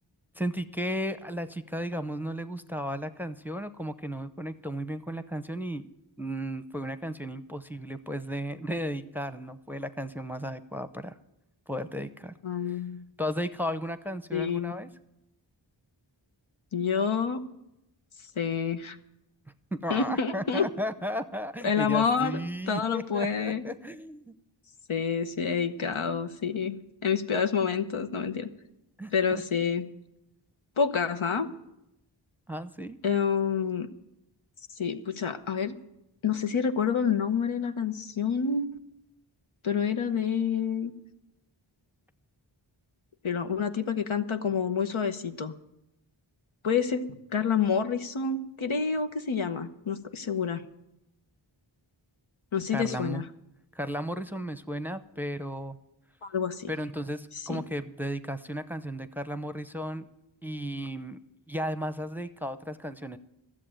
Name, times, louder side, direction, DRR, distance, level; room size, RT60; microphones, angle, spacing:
voice 1, 0.3-5.9 6.2-11.2 11.7-12.3 12.7-12.8 13.2-14.9 19.7-24.3 29.0-29.4 32.5-33.0 52.7-53.2 53.7-55.8 56.7-60.1 60.4-61.2 61.5-63.2, equal, 5° right, 11 dB, 0.7 m, -34 dB
voice 2, 12.4-13.0 14.3-14.7 16.7-17.4 18.4-19.0 19.9-20.7 21.6-22.4 22.7-23.6 24.9-28.5 29.1-29.9 30.8-31.5 33.0-33.9 34.8-35.7 36.2-38.7 39.6-40.9 43.2-45.5 46.6-50.6 52.5-53.2 56.2-56.7 57.5-57.6, left 6 dB, 90° left, 8 dB, 0.9 m, -28 dB
13.5 x 7.5 x 8.9 m, 0.88 s
wide cardioid pair, 45°, 47 cm